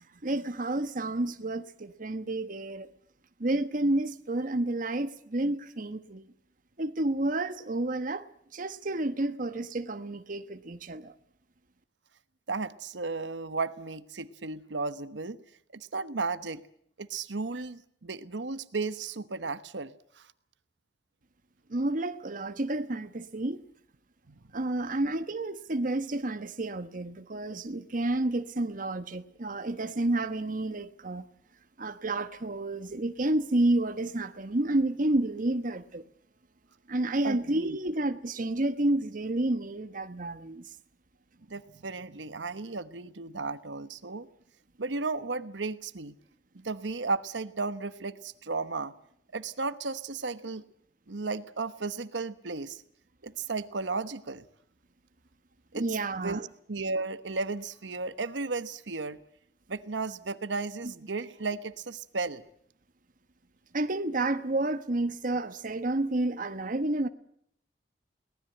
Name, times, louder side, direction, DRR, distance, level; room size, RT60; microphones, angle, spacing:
voice 1, 0.2-2.9 3.4-6.3 6.8-8.2 8.5-11.1 21.7-23.6 24.5-31.2 31.8-36.0 36.9-40.6 55.7-56.4 63.7-67.1, right 2 dB, 50° right, 1.1 m, -30 dB
voice 2, 12.5-15.4 15.7-16.6 17.0-20.3 24.3-24.4 37.2-37.8 41.5-44.3 44.8-46.1 46.5-48.9 49.3-50.6 51.1-52.8 53.2-54.4 55.7-59.2 59.7-62.4, right 3 dB, 90° right, 1.1 m, -34 dB
23.5 x 18.5 x 7.9 m
head